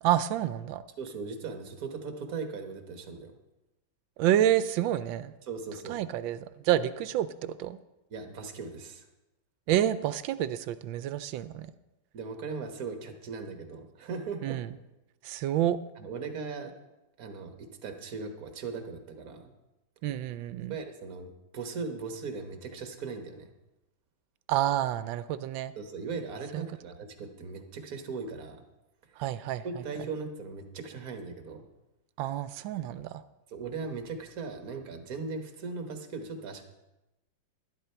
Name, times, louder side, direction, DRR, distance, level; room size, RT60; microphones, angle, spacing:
voice 1, 0.0-0.8 4.2-5.3 5.9-7.8 9.7-11.7 14.4-14.7 15.2-15.8 20.0-20.8 24.5-25.7 26.5-26.7 29.2-29.8 32.2-33.2, right 12 dB, 85° right, 14 dB, 1.3 m, -29 dB
voice 2, 1.0-3.3 5.5-6.0 8.1-9.1 12.1-14.6 16.0-16.7 17.2-19.5 20.7-23.5 25.8-28.6 29.6-31.7 33.5-36.6, right 4 dB, 55° right, 5 dB, 1.6 m, -38 dB
12.0 x 11.0 x 4.4 m, 0.98 s
omnidirectional pair, 2.1 m